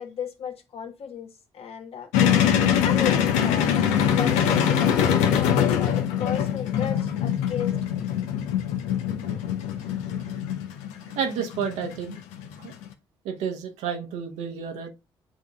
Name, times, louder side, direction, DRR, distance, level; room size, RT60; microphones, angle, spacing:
voice 1, 0.0-2.1 2.8-3.8 4.0-8.1, left 7 dB, 55° left, 1.3 m, -34 dB
sound 1, 2.1-12.9, left 9 dB, 70° left, 0.7 m, -23 dB
voice 2, 11.0-12.2 12.6-12.7 13.2-14.9, right 7 dB, 70° right, 1.2 m, -30 dB
10.0 x 4.0 x 2.4 m
figure-of-eight pair, 40°, 12 cm